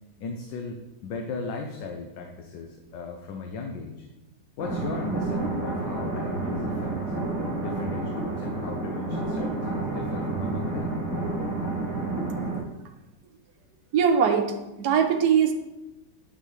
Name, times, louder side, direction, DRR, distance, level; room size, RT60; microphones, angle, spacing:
voice 1, 0.2-0.8 1.0-4.1 4.6-7.0 7.6-11.0, left 4 dB, 80° left, 2 dB, 1.4 m, -36 dB
sound 1, 4.6-12.6, right 3 dB, 10° right, 1.5 m, -30 dB
voice 2, 13.9-15.5, right 7 dB, 65° right, 4 dB, 1.2 m, -21 dB
9.7 x 5.4 x 3.2 m, 0.99 s
omnidirectional pair, 1.9 m